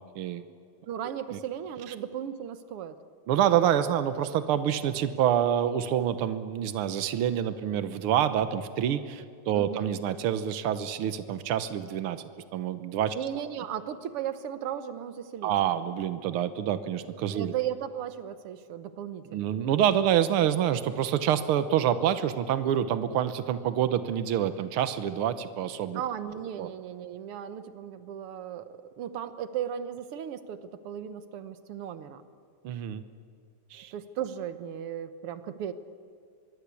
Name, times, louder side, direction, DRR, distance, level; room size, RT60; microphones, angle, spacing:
voice 1, 0.9-3.0 9.5-9.9 13.1-15.5 17.3-19.6 25.9-32.2 33.9-35.7, right 9 dB, 65° right, 11 dB, 1.4 m, -36 dB
voice 2, 3.3-12.2 12.5-13.2 15.4-17.5 19.3-26.0 26.6-26.7 32.6-33.0 33.7-33.9, right 10 dB, 90° right, 11 dB, 1.2 m, -27 dB
25.0 x 22.0 x 8.4 m, 2.3 s
omnidirectional pair, 3.8 m